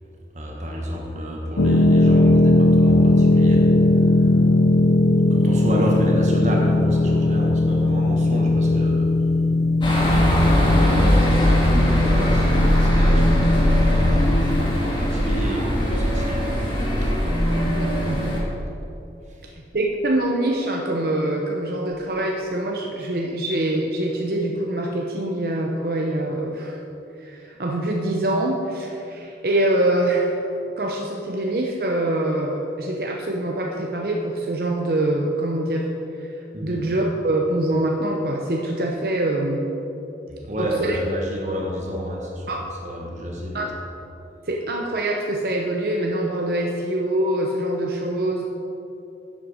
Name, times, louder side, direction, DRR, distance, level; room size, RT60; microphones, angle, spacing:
voice 1, 0.3-4.4 5.3-9.1 10.5-16.5 16.9-17.1 19.3-19.5 36.5-36.8 40.4-42.5 42.8-43.7, equal, 40° right, -1 dB, 1.4 m, -29 dB
sound 1, 1.6-14.8, left 2 dB, 75° left, 0.7 m, -19 dB
sound 2, 9.8-18.4, equal, 25° left, 1.8 m, -20 dB
voice 2, 17.6-18.3 19.7-26.8 27.2-30.4 30.8-35.9 36.2-36.3 36.6-39.7 40.6-41.0 42.5-42.6 43.5-43.7 44.5-48.4, right 1 dB, 60° right, 0 dB, 0.8 m, -24 dB
11.0 x 7.6 x 5.0 m, 2.9 s
head